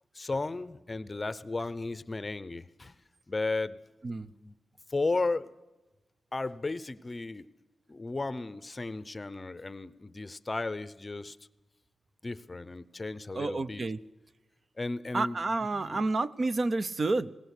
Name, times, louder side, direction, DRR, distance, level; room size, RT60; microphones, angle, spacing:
voice 1, 0.1-2.9 3.3-3.8 4.2-4.6 4.9-5.5 6.3-7.5 7.9-11.4 12.2-13.8 14.8-15.4 15.8-16.0, left 3 dB, 25° left, 16 dB, 0.7 m, -34 dB
voice 2, 13.3-14.0 15.1-17.3, right 3 dB, 35° right, 13 dB, 0.6 m, -29 dB
20.5 x 18.0 x 8.3 m, 1.1 s
wide cardioid pair, 155°, 0 cm